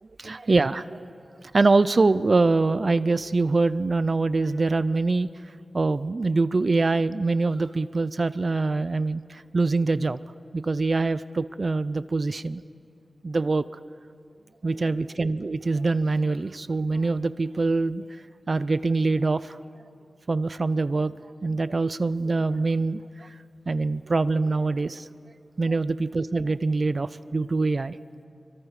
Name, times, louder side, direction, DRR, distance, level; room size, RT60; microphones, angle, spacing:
voice 1, 0.2-1.1 1.5-5.3 5.7-10.2 10.5-12.6 13.2-13.6 14.6-18.0 18.5-19.6 20.3-21.1 21.4-23.4 23.7-25.1 25.6-28.0, right 3 dB, 45° right, 15 dB, 0.4 m, -24 dB
26.0 x 23.5 x 4.8 m, 2.4 s
wide cardioid pair, 90°, 0 cm